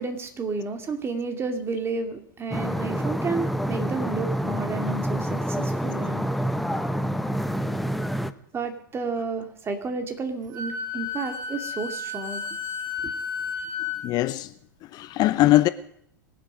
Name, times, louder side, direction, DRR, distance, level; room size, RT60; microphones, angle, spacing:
voice 1, 0.0-6.2 8.5-12.4 13.0-13.1, right 4 dB, 25° right, 2.4 m, -31 dB
sound 1, 2.5-8.3, equal, ahead, 0.8 m, -27 dB
Wind instrument woodwind instrument, 10.5-14.0, left 5 dB, 75° right, 4.9 m, -32 dB
voice 2, 14.0-14.5 14.9-15.7, left 16 dB, 40° left, 0.7 m, -20 dB
23.0 x 7.6 x 5.1 m
hypercardioid pair, 100°, 10 cm